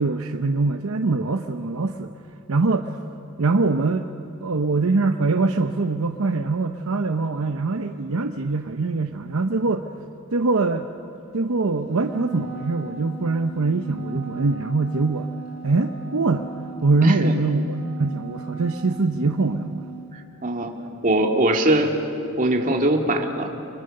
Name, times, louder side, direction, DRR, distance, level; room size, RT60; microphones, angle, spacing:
voice 1, 0.0-2.1 2.5-2.9 3.4-4.0 4.4-9.8 10.3-10.9 11.3-15.3 15.6-16.4 16.8-19.8, right 3 dB, 70° right, 7 dB, 0.8 m, -23 dB
Wind instrument woodwind instrument, 12.0-20.1, right 3 dB, 85° left, 4.8 m, -37 dB
voice 2, 17.0-17.3 20.1-20.7 21.0-21.9 22.4-23.5, right 1 dB, 40° right, 2 dB, 2.5 m, -21 dB
29.5 x 25.0 x 6.6 m, 2.6 s
head